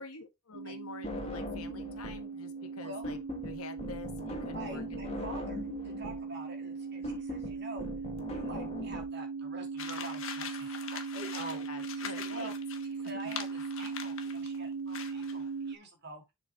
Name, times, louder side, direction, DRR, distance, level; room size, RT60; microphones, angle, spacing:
voice 1, 0.0-5.0 11.4-12.5 13.2-13.3, left 4 dB, 85° left, 1.4 m, -47 dB
sound 1, 0.5-15.8, right 5 dB, 65° right, 0.6 m, -39 dB
sound 2, 1.0-2.3 2.6-9.0, left 1 dB, 25° left, 1.5 m, -40 dB
voice 2, 4.5-7.9 8.3-12.5 12.9-16.2, right 2 dB, 50° right, 2.7 m, -46 dB
sound 3, 9.8-14.6 14.9-15.4, left 7 dB, 70° left, 1.4 m, -43 dB
7.3 x 5.4 x 3.6 m
head